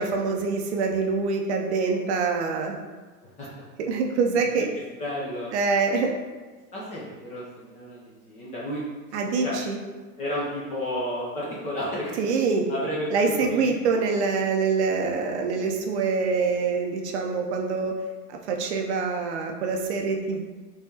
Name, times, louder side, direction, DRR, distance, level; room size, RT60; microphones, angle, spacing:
voice 1, 0.0-2.8 3.8-4.7 5.5-6.1 9.1-9.8 12.2-12.6 13.1-17.9 18.3-20.4, right 4 dB, 45° right, 2 dB, 0.5 m, -25 dB
voice 2, 5.0-5.5 6.7-8.8 9.3-9.6 10.2-12.3 12.7-13.1 13.4-14.1, equal, 15° left, -6 dB, 0.4 m, -32 dB
3.5 x 3.4 x 2.7 m, 1.3 s
hypercardioid pair, 110°, 49 cm